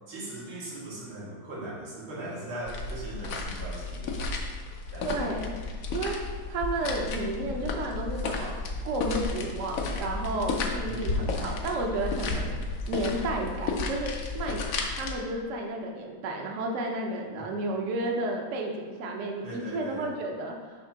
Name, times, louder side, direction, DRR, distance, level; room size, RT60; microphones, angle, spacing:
voice 1, 0.1-4.3 4.9-5.4 10.8-11.5 17.3-17.5 19.4-20.1, right 1 dB, 85° right, -5 dB, 2.5 m, -40 dB
sound 1, 2.7-15.1, left 3 dB, 80° left, 0.7 m, -33 dB
voice 2, 5.0-5.5 5.9-6.2 6.5-12.5 12.9-14.6 14.9-20.5, right 2 dB, 60° right, 1 dB, 0.8 m, -32 dB
7.0 x 2.8 x 5.8 m, 1.5 s
omnidirectional pair, 2.3 m